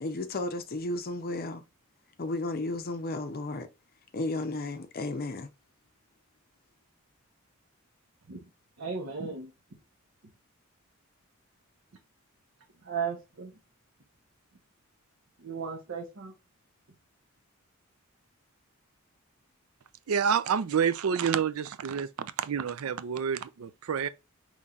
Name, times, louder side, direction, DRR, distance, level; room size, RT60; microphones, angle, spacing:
voice 1, 0.0-1.6 2.2-3.7 4.1-5.5, left 2 dB, 45° left, 0.5 m, -33 dB
voice 2, 8.8-9.5 12.9-13.5 15.4-16.3, right 5 dB, 65° right, 0.8 m, -35 dB
voice 3, 20.1-24.1, right 7 dB, 85° right, 0.4 m, -28 dB
5.4 x 3.2 x 2.4 m
head